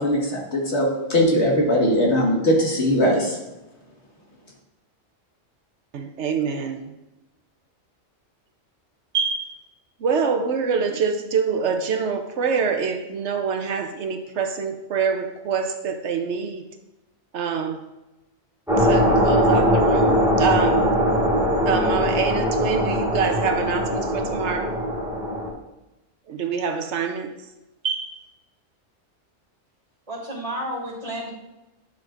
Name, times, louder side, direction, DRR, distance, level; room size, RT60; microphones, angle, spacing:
voice 1, 0.0-3.4, equal, 65° left, -2 dB, 1.9 m, -20 dB
voice 2, 5.9-6.8 9.1-9.6 10.0-16.6 17.3-17.8 18.8-20.9 21.7-24.7 26.3-27.3 27.8-28.2, right 6 dB, 75° right, 5 dB, 1.0 m, -25 dB
sound 1, 18.7-25.5, equal, 5° right, 1.8 m, -21 dB
voice 3, 30.1-31.3, right 1 dB, 30° right, -4 dB, 2.4 m, -31 dB
10.5 x 6.0 x 2.5 m, 0.99 s
omnidirectional pair, 1.2 m